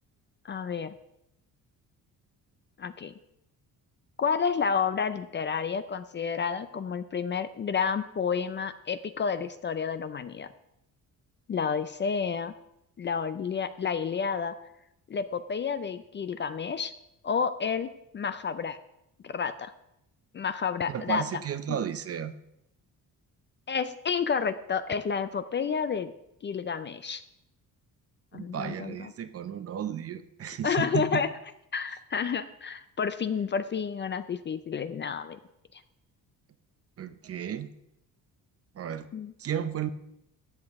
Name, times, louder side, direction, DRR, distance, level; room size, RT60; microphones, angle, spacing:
voice 1, 0.4-0.9 2.8-3.1 4.2-10.5 11.5-12.5 13.0-14.5 15.1-16.9 17.2-17.9 18.1-18.8 19.2-19.7 20.3-21.4 21.7-21.8 23.7-26.1 26.4-27.2 28.3-29.1 30.6-31.3 31.7-35.4 35.7-35.8 39.1-39.3, left 6 dB, 30° left, 12 dB, 0.4 m, -30 dB
voice 2, 20.9-22.3 28.3-31.2 37.0-37.7 38.7-39.1 39.4-39.9, right 9 dB, 40° right, 11 dB, 0.6 m, -33 dB
13.0 x 8.5 x 3.5 m, 0.81 s
cardioid pair, 140°, 36 cm